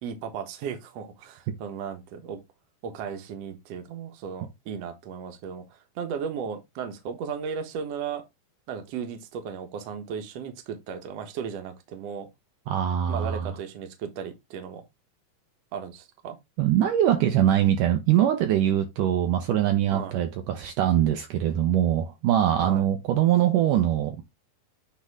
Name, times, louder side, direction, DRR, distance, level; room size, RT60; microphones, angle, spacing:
voice 1, 0.0-2.4 2.8-8.2 8.7-12.3 13.1-14.8 15.7-16.4 19.9-20.1 22.6-22.9, right 7 dB, 55° right, 2.0 m, -35 dB
voice 2, 12.7-13.4 16.6-24.2, right 11 dB, 75° right, 2.2 m, -23 dB
9.9 x 3.6 x 3.6 m
omnidirectional pair, 4.2 m